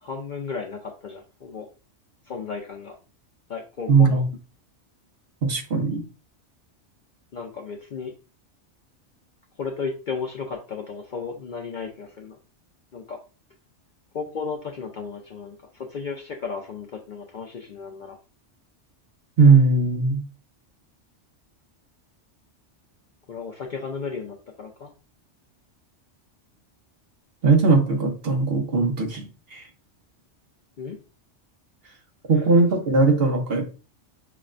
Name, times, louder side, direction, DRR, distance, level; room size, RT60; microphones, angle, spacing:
voice 1, 0.0-1.7 2.3-3.0 3.5-4.2 7.3-8.1 9.6-12.4 12.9-13.2 14.1-18.2 23.3-24.9 30.8-31.0, left 5 dB, 55° left, 2 dB, 0.5 m, -34 dB
voice 2, 3.9-4.2 5.4-6.0 19.4-20.2 27.4-29.6 32.3-33.7, right 4 dB, 60° right, 3 dB, 0.9 m, -19 dB
5.7 x 2.1 x 2.4 m, 0.34 s
omnidirectional pair, 1.2 m